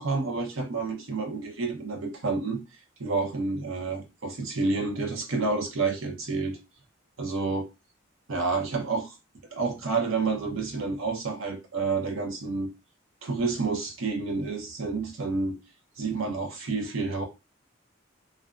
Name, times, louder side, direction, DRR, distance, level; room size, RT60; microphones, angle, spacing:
voice 1, 0.0-2.6 3.0-6.6 7.2-7.7 8.3-9.2 9.5-12.7 13.2-15.6 16.0-17.2, right 4 dB, 90° right, 0.8 m, -29 dB
2.5 x 2.2 x 2.4 m
head